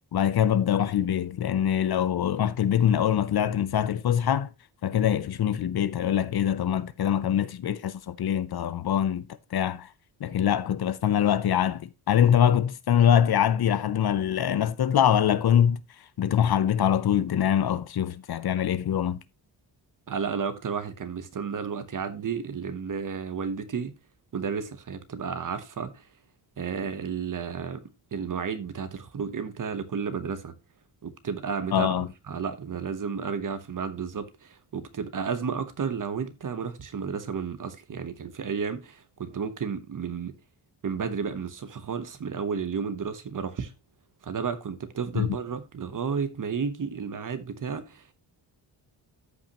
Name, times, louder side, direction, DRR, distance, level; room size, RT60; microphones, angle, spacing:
voice 1, 0.1-4.5 4.8-9.9 10.2-15.8 16.2-19.2 31.7-32.1 45.2-45.3, left 9 dB, 55° left, 0.6 m, -24 dB
voice 2, 20.1-23.9 24.3-26.1 26.6-27.8 28.1-30.5 31.0-40.3 40.8-43.7 44.2-48.1, right 6 dB, 40° right, 1.0 m, -32 dB
13.5 x 5.6 x 2.9 m
wide cardioid pair, 175°, 46 cm